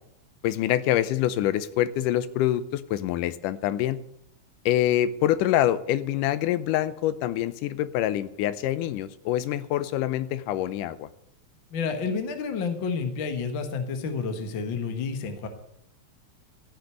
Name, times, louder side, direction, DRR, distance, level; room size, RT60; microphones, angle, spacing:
voice 1, 0.4-4.0 4.7-11.1, left 12 dB, 80° left, 14 dB, 2.2 m, -25 dB
voice 2, 11.7-15.5, left 5 dB, 55° left, 6 dB, 1.5 m, -30 dB
14.5 x 6.6 x 9.6 m, 0.76 s
omnidirectional pair, 3.9 m